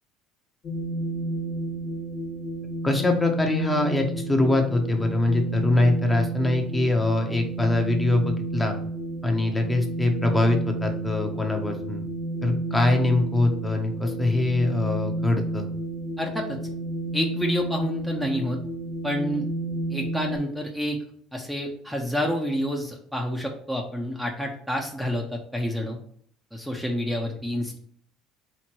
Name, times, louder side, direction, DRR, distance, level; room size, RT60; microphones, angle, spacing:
sound 1, 0.6-20.4, right 2 dB, 50° left, 1.7 m, -31 dB
voice 1, 2.8-8.8 9.2-12.1 12.4-15.7, left 2 dB, 15° left, 3 dB, 1.1 m, -23 dB
voice 2, 16.2-16.6 17.1-18.6 19.0-19.5 19.9-21.0 21.3-26.0 26.5-27.8, equal, 5° right, 1 dB, 1.0 m, -28 dB
4.5 x 3.5 x 3.1 m, 0.62 s
hypercardioid pair, 70°, 0 cm